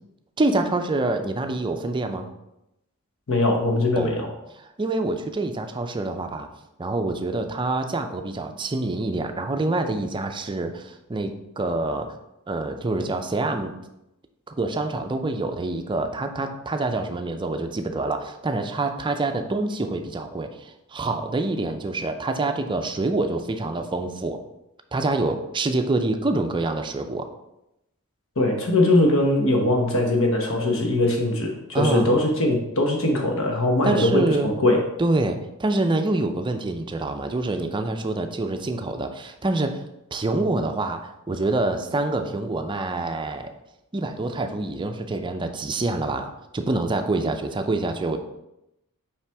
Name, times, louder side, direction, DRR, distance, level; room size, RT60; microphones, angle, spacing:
voice 1, 0.4-2.3 4.0-4.2 4.8-6.5 6.8-12.1 12.5-13.7 14.5-24.4 24.9-27.3 31.7-32.2 33.8-34.5 35.0-39.8 40.1-43.5 43.9-48.2, right 2 dB, 20° right, 6 dB, 0.5 m, -26 dB
voice 2, 3.3-4.3 28.4-34.8, left 1 dB, 65° left, 2 dB, 1.1 m, -21 dB
5.7 x 4.9 x 3.5 m, 0.87 s
head